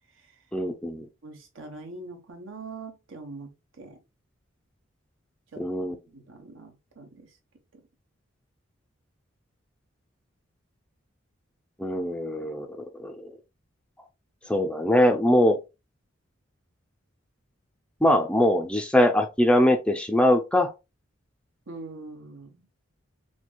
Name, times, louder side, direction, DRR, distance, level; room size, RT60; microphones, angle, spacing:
voice 1, 0.5-1.1 5.6-5.9 11.8-12.7 13.0-13.3 14.5-15.6 18.0-20.7, left 1 dB, 5° left, 0.3 m, -22 dB
voice 2, 1.2-3.5 3.8-4.0 5.5-5.6 6.1-7.3 21.7-22.7, right 3 dB, 75° right, 1.0 m, -42 dB
4.3 x 2.6 x 2.2 m
head